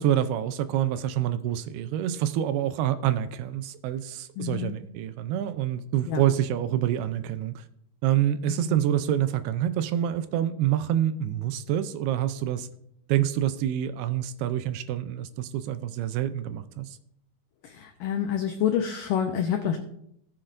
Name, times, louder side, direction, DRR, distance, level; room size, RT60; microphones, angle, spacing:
voice 1, 0.0-7.6 8.0-12.7 13.1-17.0, right 11 dB, 80° right, 11 dB, 2.4 m, -27 dB
voice 2, 4.4-4.8 6.1-6.2 8.5-8.8 17.6-19.8, left 8 dB, 90° left, 5 dB, 1.9 m, -28 dB
17.0 x 7.8 x 2.5 m, 0.73 s
omnidirectional pair, 4.7 m